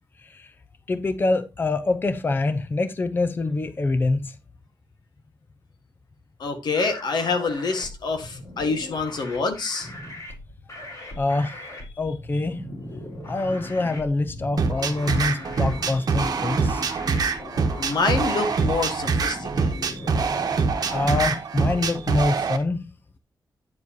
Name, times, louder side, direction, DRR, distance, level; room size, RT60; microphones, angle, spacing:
voice 1, 0.2-0.5 0.9-4.4 11.2-11.6 12.0-12.6 13.3-16.8 20.9-22.9, left 2 dB, 30° left, 0.6 m, -25 dB
voice 2, 6.4-9.9 17.8-19.9, left 4 dB, 80° left, 1.6 m, -26 dB
sound 1, 6.7-21.4, left 1 dB, 50° left, 4.0 m, -39 dB
sound 2, 14.6-22.6, right 4 dB, 60° right, 1.1 m, -24 dB
9.6 x 7.1 x 2.8 m
wide cardioid pair, 160°, 7 cm